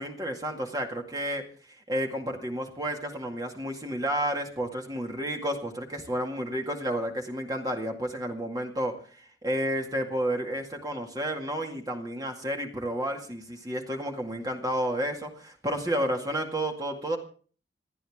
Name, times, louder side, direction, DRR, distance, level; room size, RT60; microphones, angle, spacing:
voice 1, 0.0-1.4 1.9-17.2, equal, 20° right, 3 dB, 2.1 m, -31 dB
27.5 x 10.0 x 3.6 m, 0.42 s
head